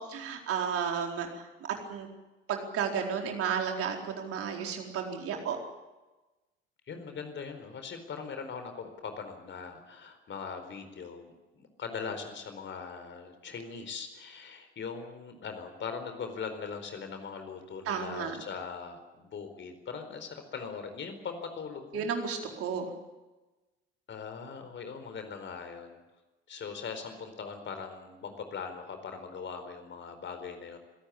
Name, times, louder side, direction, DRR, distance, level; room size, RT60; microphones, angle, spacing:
voice 1, 0.0-1.5 1.9-2.1 2.5-5.6 17.9-18.4 21.9-22.9, right 7 dB, 50° right, 2 dB, 4.4 m, -33 dB
voice 2, 6.9-22.1 24.1-26.0 26.5-30.8, left 5 dB, 40° left, 7 dB, 4.4 m, -40 dB
26.0 x 18.0 x 8.6 m, 1.1 s
figure-of-eight pair, 60°, 30 cm